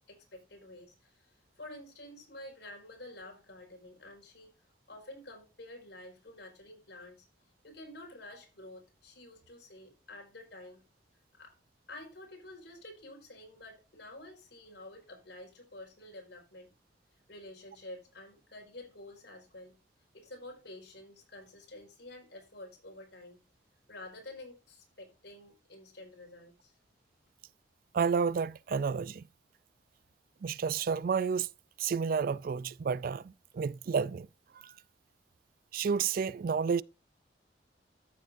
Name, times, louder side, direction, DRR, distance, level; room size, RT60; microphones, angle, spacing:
voice 1, 0.1-4.5 4.9-7.3 7.6-10.8 11.4-11.5 11.9-16.7 17.3-19.8 20.1-23.4 23.9-26.7, left 1 dB, 65° left, 4.9 m, -49 dB
voice 2, 27.9-29.2 30.4-31.5 31.8-34.3 34.6-34.7 35.7-36.8, right 6 dB, 50° right, 0.4 m, -30 dB
13.5 x 7.5 x 2.6 m
head